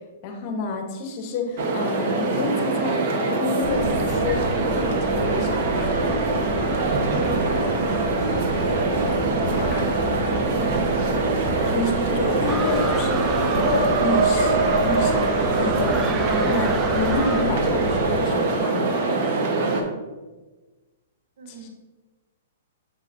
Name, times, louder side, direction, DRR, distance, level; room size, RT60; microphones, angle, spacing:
voice 1, 0.2-5.6 9.4-9.7 11.6-14.6 14.8-19.0 21.5-21.7, left 2 dB, 40° left, 4 dB, 1.0 m, -29 dB
sound 1, 1.6-19.8, right 3 dB, 50° right, 1.0 m, -23 dB
sound 2, 3.6-18.2, equal, 5° right, 1.9 m, -32 dB
sound 3, 12.5-17.4, right 4 dB, 20° right, 0.5 m, -33 dB
voice 2, 21.4-21.7, right 4 dB, 70° right, 4 dB, 0.9 m, -44 dB
7.3 x 5.2 x 2.6 m, 1.2 s
hypercardioid pair, 140°, 0 cm